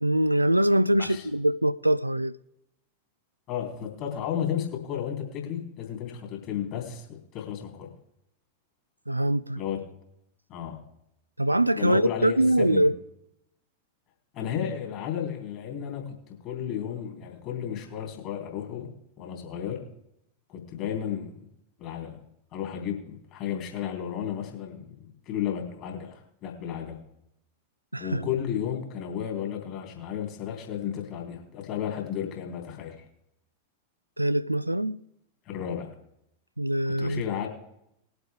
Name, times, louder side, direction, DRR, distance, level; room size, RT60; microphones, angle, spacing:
voice 1, 0.0-2.3 9.1-9.6 11.4-12.9 27.9-28.2 34.2-35.0 36.6-37.2, right 1 dB, 85° right, 0.3 m, -23 dB
voice 2, 0.9-1.3 3.5-7.9 9.6-9.8 10.5-10.8 11.8-12.9 14.3-16.1 16.4-18.9 19.2-19.8 20.5-21.5 21.8-22.2 22.5-26.1 26.4-27.0 28.0-33.0 35.4-35.9 36.9-37.5, left 9 dB, 40° left, 3.4 m, -33 dB
20.0 x 8.0 x 3.5 m
figure-of-eight pair, 90°, 0 cm